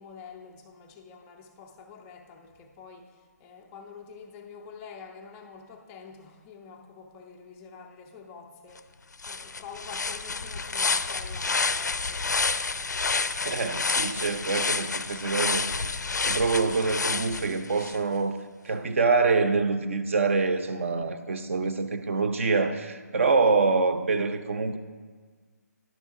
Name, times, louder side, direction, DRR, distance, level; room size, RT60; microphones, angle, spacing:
voice 1, 0.0-12.4, left 5 dB, 10° left, 3 dB, 0.3 m, -47 dB
sound 1, 8.8-8.9 9.2-18.0, left 4 dB, 75° left, 0.4 m, -29 dB
voice 2, 13.5-18.4 18.6-24.8, right 4 dB, 45° right, 9 dB, 0.5 m, -26 dB
10.5 x 6.6 x 3.6 m, 1.5 s
figure-of-eight pair, 155°, 10 cm